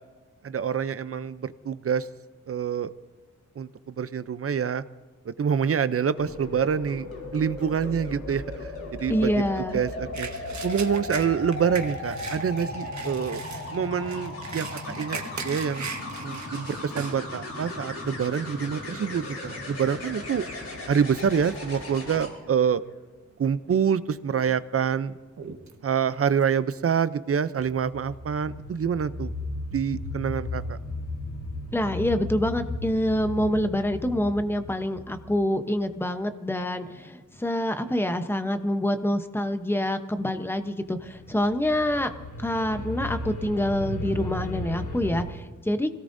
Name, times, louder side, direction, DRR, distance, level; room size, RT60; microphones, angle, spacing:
voice 1, 0.4-2.1 2.5-2.9 3.6-4.8 5.3-7.1 7.3-8.4 9.0-9.3 9.7-10.3 10.6-13.4 13.7-15.2 15.4-15.9 16.2-20.4 20.9-22.8 23.4-25.2 25.8-29.3 29.7-30.8, right 7 dB, 50° right, 14 dB, 0.6 m, -26 dB
sound 1, 6.2-22.3 24.2-24.5, left 2 dB, 55° left, 4.4 m, -36 dB
voice 2, 9.1-9.8 31.7-42.1 42.4-45.9, left 1 dB, 5° left, 8 dB, 0.9 m, -26 dB
sound 2, 10.1-17.2 17.7-17.8 18.3-18.7 19.4-19.6 19.9-21.1 21.4-21.9 22.3-22.4 23.3-23.8 24.2-27.3, right 5 dB, 65° right, 1.4 m, -39 dB
sound 3, 27.9-36.3 40.8-45.2, left 2 dB, 80° left, 3.6 m, -36 dB
26.0 x 17.5 x 2.7 m, 1.3 s
wide cardioid pair, 145°, 30 cm